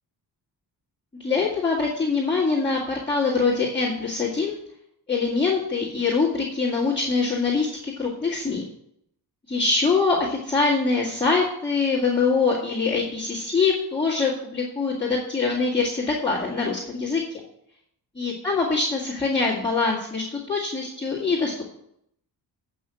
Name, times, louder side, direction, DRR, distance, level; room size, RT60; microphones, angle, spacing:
voice 1, 1.2-4.6 5.1-8.6 9.5-17.2 18.2-21.7, left 4 dB, 15° left, -8 dB, 2.0 m, -24 dB
8.5 x 5.6 x 7.4 m, 0.73 s
wide cardioid pair, 160°, 39 cm